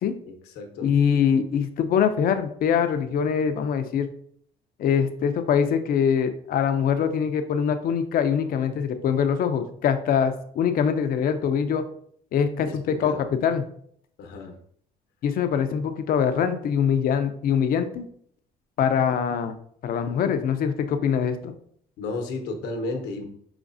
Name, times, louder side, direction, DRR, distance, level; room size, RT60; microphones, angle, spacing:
voice 1, 0.3-0.9 12.7-13.3 14.2-14.6 22.0-23.2, left 3 dB, 80° left, 4 dB, 1.0 m, -33 dB
voice 2, 0.8-4.1 4.8-11.8 12.3-13.6 15.2-18.0 18.8-19.6 19.8-21.5, left 7 dB, 60° left, 8 dB, 0.6 m, -23 dB
6.0 x 3.1 x 2.6 m, 0.63 s
cardioid pair, 110°, 17 cm